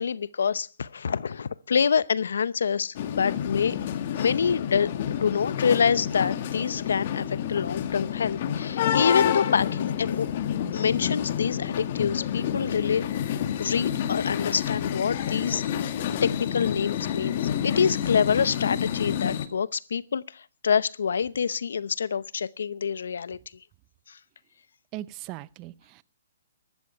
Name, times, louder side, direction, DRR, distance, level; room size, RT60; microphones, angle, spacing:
voice 1, 0.0-3.8 4.2-10.3 10.7-15.6 16.2-23.4 24.1-24.2, left 6 dB, 75° left, 0.7 m, -26 dB
sound 1, 3.0-19.5, left 9 dB, 50° left, 1.7 m, -29 dB
voice 2, 24.9-26.0, right 15 dB, 30° right, 0.7 m, -39 dB
15.5 x 12.5 x 5.6 m
hypercardioid pair, 140°, 0 cm